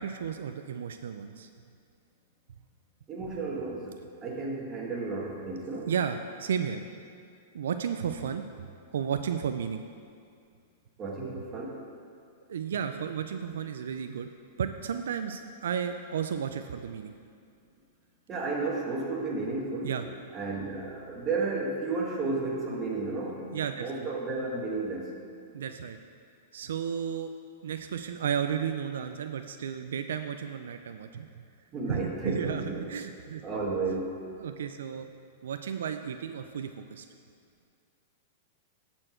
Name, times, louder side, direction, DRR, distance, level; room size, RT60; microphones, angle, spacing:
voice 1, 0.0-1.5 5.8-6.8 7.5-8.6 8.9-9.8 12.5-14.3 14.6-17.1 19.8-20.0 23.5-24.1 25.5-26.0 26.5-27.3 27.6-31.5 31.9-33.4 34.4-35.1 35.4-37.0, right 7 dB, 85° right, 7 dB, 0.4 m, -33 dB
voice 2, 3.1-3.9 4.2-5.9 11.0-11.8 18.3-19.9 20.3-23.4 23.8-25.1 31.7-32.9 33.4-34.2, right 3 dB, 25° right, -2 dB, 1.5 m, -32 dB
12.5 x 4.4 x 4.4 m, 2.4 s
hypercardioid pair, 140°, 0 cm